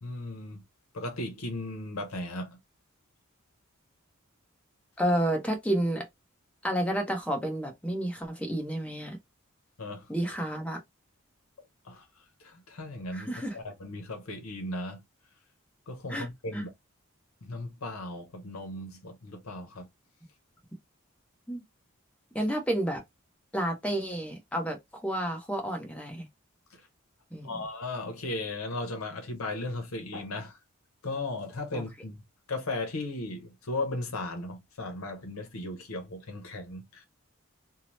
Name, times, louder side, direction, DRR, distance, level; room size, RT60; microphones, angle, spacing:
voice 1, 0.0-0.6 0.9-2.6 9.8-10.1 11.8-12.1 12.4-15.0 15.9-16.7 17.4-19.9 26.7-26.8 27.4-30.6 31.0-32.2 32.5-37.0, left 2 dB, 75° left, 0.7 m, -36 dB
voice 2, 5.0-6.1 6.6-9.2 10.1-10.8 13.1-13.6 16.1-16.6 21.5-21.6 22.3-23.0 23.5-26.3 27.3-27.6 31.7-31.8, right 1 dB, 5° left, 0.6 m, -30 dB
2.8 x 2.0 x 3.0 m
head